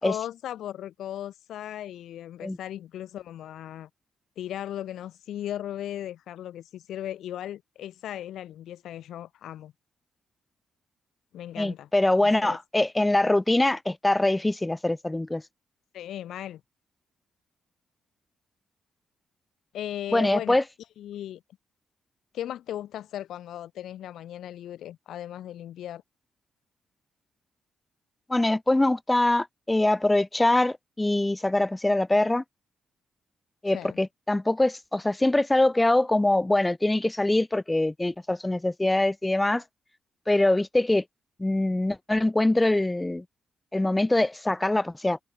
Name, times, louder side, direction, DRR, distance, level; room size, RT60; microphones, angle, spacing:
voice 1, 0.0-3.9 4.4-9.7 11.3-11.9 12.2-12.6 15.9-16.6 19.7-20.6 21.0-21.4 22.3-26.0 33.7-34.0, left 11 dB, 75° left, 1.8 m, -37 dB
voice 2, 11.6-15.4 20.1-20.6 28.3-32.4 33.6-39.6 40.3-41.0 41.4-43.2 43.7-45.2, left 2 dB, 15° left, 0.6 m, -23 dB
hypercardioid pair, 45°, 0 cm